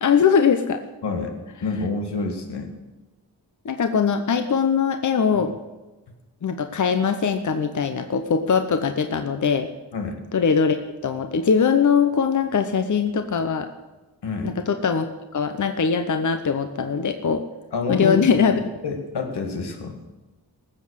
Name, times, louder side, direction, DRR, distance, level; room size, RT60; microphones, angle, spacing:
voice 1, 0.0-0.8 3.6-5.5 6.4-9.7 10.3-10.8 11.0-13.7 14.4-17.4 17.9-18.6, left 6 dB, 50° left, 7 dB, 0.9 m, -21 dB
voice 2, 1.0-1.3 1.6-2.7 9.9-10.2 14.2-14.5 17.7-18.2 18.8-20.0, left 4 dB, 90° left, 4 dB, 2.1 m, -27 dB
19.0 x 7.6 x 6.5 m, 1.1 s
wide cardioid pair, 115°, 39 cm